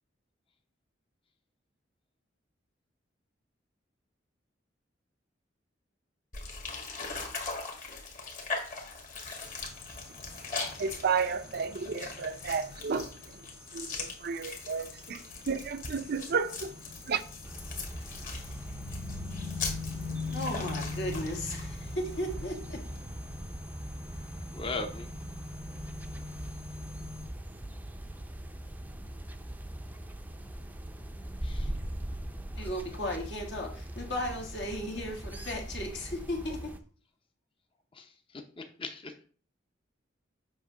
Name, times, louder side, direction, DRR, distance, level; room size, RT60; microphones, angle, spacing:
sound 1, 6.3-22.3, left 4 dB, 45° left, 1.7 m, -41 dB
sound 2, 9.4-27.3, left 3 dB, 85° left, 1.9 m, -43 dB
voice 1, 10.8-13.5 13.7-17.2, right 5 dB, 55° right, 0.5 m, -32 dB
sound 3, 17.4-36.8, right 1 dB, 10° right, 0.5 m, -41 dB
voice 2, 20.3-22.8 32.6-36.7, left 1 dB, 70° left, 1.6 m, -35 dB
voice 3, 24.5-25.1 31.4-31.8 37.9-39.2, left 3 dB, 30° left, 0.7 m, -39 dB
7.6 x 3.0 x 5.7 m
head